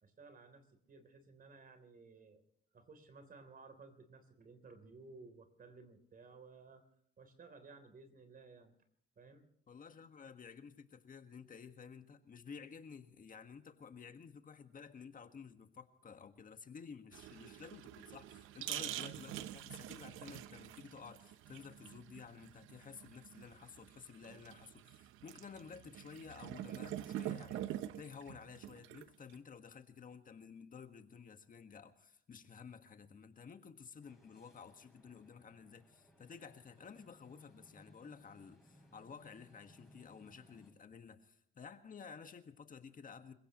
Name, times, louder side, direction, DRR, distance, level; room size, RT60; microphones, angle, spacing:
voice 1, 0.0-2.4 2.7-6.8 7.2-8.7 9.2-9.5, right 4 dB, 45° right, 9 dB, 3.4 m, -57 dB
voice 2, 9.7-43.3, left 6 dB, 45° left, 7 dB, 1.6 m, -53 dB
sound 1, 17.1-29.3, right 12 dB, 90° right, 0.8 m, -46 dB
sound 2, 34.0-40.7, equal, ahead, 7.1 m, -65 dB
26.5 x 16.5 x 3.1 m, 0.69 s
cardioid pair, 90°, 20 cm